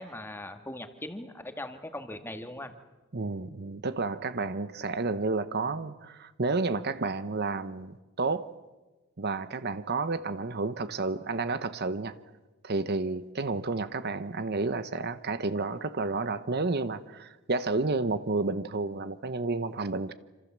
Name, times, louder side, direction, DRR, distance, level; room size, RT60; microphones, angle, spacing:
voice 1, 0.0-2.7, left 1 dB, 10° left, 1.8 m, -40 dB
voice 2, 3.1-8.5 9.2-12.2 12.6-20.1, right 3 dB, 50° right, 0.9 m, -31 dB
27.0 x 26.5 x 7.5 m
head